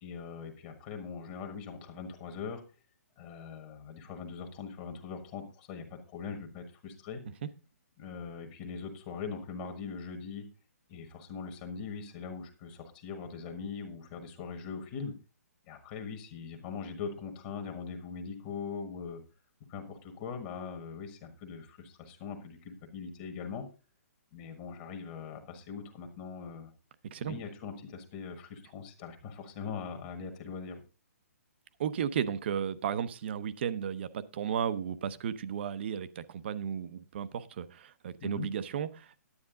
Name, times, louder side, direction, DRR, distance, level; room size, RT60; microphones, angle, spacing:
voice 1, 0.0-2.6 3.2-7.2 8.0-10.4 10.9-15.1 15.7-19.2 19.7-23.6 24.3-26.7 27.3-30.8 38.2-38.5, left 5 dB, 25° left, 1.4 m, -41 dB
voice 2, 31.8-39.2, right 8 dB, 40° right, 0.7 m, -34 dB
9.8 x 9.6 x 3.7 m
hypercardioid pair, 165°, 9 cm